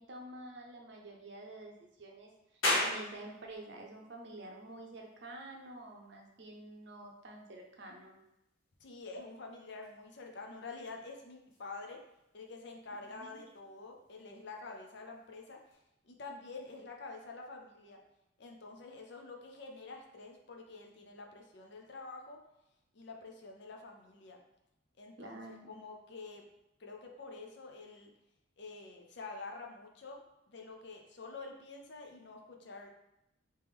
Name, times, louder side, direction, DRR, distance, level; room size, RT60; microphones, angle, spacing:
voice 1, 0.0-8.2 13.1-13.5 25.2-25.8, right 2 dB, 55° right, 1 dB, 0.6 m, -49 dB
sound 1, 2.6-15.7, left 1 dB, 75° left, 1.1 m, -43 dB
voice 2, 8.8-12.0 12.3-15.8 16.0-18.0 18.4-22.4 22.9-24.4 25.0-26.5 26.8-28.1 28.6-32.9, left 3 dB, 55° left, 2 dB, 0.6 m, -48 dB
3.2 x 3.0 x 3.5 m, 0.88 s
head